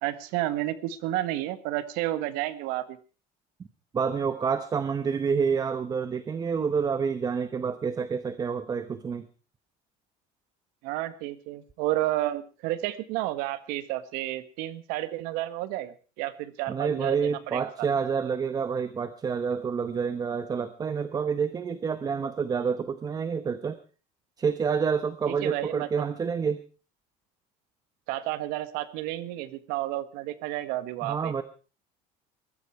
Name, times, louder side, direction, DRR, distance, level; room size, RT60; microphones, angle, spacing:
voice 1, 0.0-3.0 10.8-17.9 25.3-25.9 28.1-31.3, right 15 dB, 80° right, 13 dB, 1.6 m, -31 dB
voice 2, 3.9-9.3 16.7-23.8 24.4-26.6 31.0-31.4, right 6 dB, 25° right, 12 dB, 1.0 m, -28 dB
20.5 x 14.0 x 4.6 m, 0.36 s
cardioid pair, 135°, 15 cm